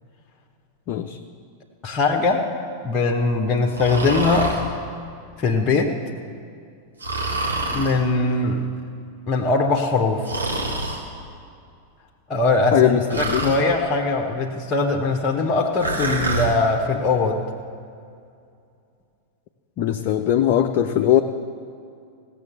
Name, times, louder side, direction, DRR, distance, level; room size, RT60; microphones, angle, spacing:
voice 1, 0.9-1.2 12.7-13.6 19.8-21.2, left 10 dB, 40° left, 5 dB, 0.5 m, -20 dB
voice 2, 1.8-2.5 2.8-4.5 5.4-5.9 7.7-8.6 9.3-10.2 12.3-17.4, left 3 dB, 25° left, 1 dB, 1.0 m, -21 dB
Breathing, 3.7-4.6 7.0-8.0 10.2-11.0 13.1-13.6 15.8-16.5, right 2 dB, 80° right, 2.1 m, -26 dB
17.0 x 6.8 x 6.8 m, 2.4 s
figure-of-eight pair, 90°, 0 cm